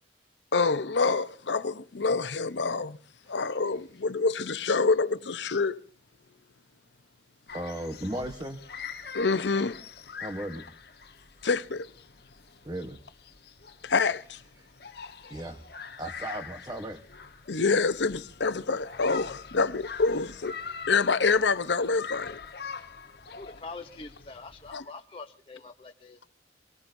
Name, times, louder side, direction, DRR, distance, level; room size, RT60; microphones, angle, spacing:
voice 1, 0.5-3.0 3.3-5.8 9.1-9.8 11.4-11.9 13.8-14.4 17.5-20.5 20.9-22.4 24.7-24.8, left 4 dB, 85° left, 0.8 m, -26 dB
sound 1, 7.5-24.8, left 6 dB, 60° left, 1.2 m, -44 dB
voice 2, 7.5-8.6 10.2-10.6 12.6-13.0 14.6-14.7 15.3-15.6 16.0-17.0, right 1 dB, 20° right, 1.1 m, -36 dB
voice 3, 23.4-26.3, left 3 dB, 30° left, 0.7 m, -44 dB
25.0 x 18.5 x 2.6 m
head